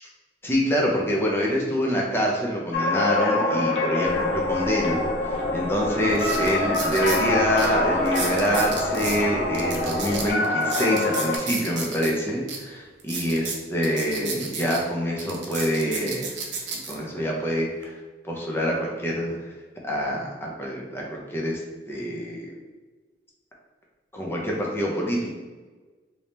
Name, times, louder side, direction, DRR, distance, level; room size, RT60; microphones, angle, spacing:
voice 1, 0.4-16.3 16.9-18.0 18.2-19.4 19.8-21.6 21.9-22.5 24.1-25.3, equal, 15° left, -3 dB, 0.7 m, -26 dB
sound 1, 2.7-11.4, left 2 dB, 70° left, 0.7 m, -25 dB
sound 2, 4.0-10.3, equal, 35° left, 1.2 m, -36 dB
sound 3, 5.5-5.6 6.1-7.2 7.6-7.7 8.1-9.2 9.5-12.1 12.5-12.6 13.0-14.8 15.2-16.9 17.6-17.8, right 5 dB, 90° right, 0.7 m, -33 dB
3.5 x 2.8 x 3.2 m, 1.3 s
head